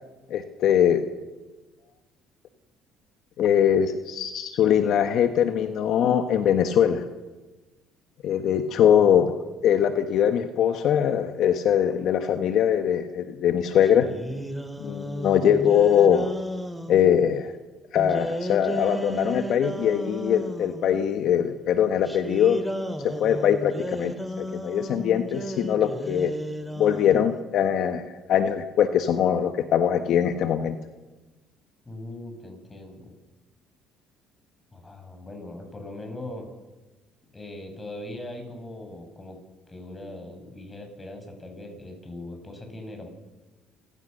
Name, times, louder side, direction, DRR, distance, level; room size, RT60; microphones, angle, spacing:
voice 1, 0.3-1.0 3.4-7.0 8.2-9.3 9.6-14.1 14.8-16.3 16.9-17.5 17.9-22.6 23.2-26.3 26.8-30.8, left 9 dB, 65° left, 8 dB, 1.4 m, -22 dB
sound 1, 13.8-17.1 18.0-20.9 22.1-27.3, equal, ahead, 2.5 m, -34 dB
voice 2, 31.9-33.1 34.7-36.5 37.3-39.4 39.7-43.1, left 1 dB, 20° left, 4 dB, 7.2 m, -40 dB
28.0 x 16.0 x 6.7 m, 1.2 s
supercardioid pair, 75°, 0 cm